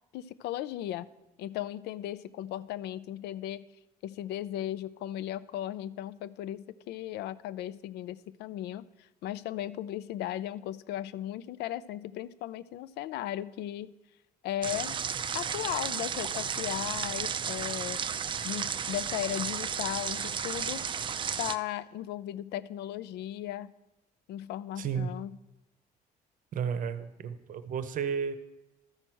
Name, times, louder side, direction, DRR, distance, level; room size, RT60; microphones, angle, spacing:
voice 1, 0.1-1.1 1.4-3.7 4.0-13.9 14.4-14.9 15.3-18.0 18.4-20.8 21.4-23.7 24.3-25.4, left 12 dB, 75° left, 17 dB, 0.4 m, -36 dB
sound 1, 14.6-21.6, right 7 dB, 30° right, 0.4 m, -33 dB
voice 2, 24.8-25.1 26.5-28.4, right 7 dB, 50° right, 12 dB, 0.7 m, -32 dB
13.0 x 4.5 x 6.1 m, 0.98 s
cardioid pair, 110°, 17 cm